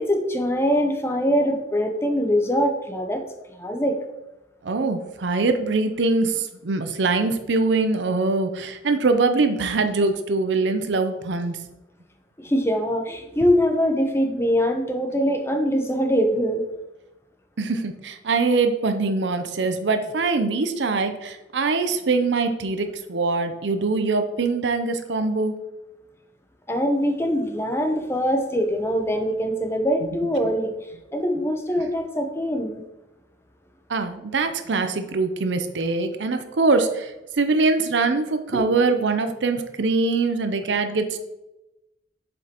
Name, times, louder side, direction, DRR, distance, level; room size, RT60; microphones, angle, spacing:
voice 1, 0.0-3.2 3.6-4.0 12.4-16.6 26.7-30.7 31.1-32.8 38.5-38.6, equal, 15° left, 4 dB, 0.7 m, -23 dB
voice 2, 4.6-11.6 17.6-25.6 33.9-41.2, right 3 dB, 80° right, 8 dB, 0.6 m, -23 dB
7.3 x 5.2 x 2.9 m, 0.96 s
head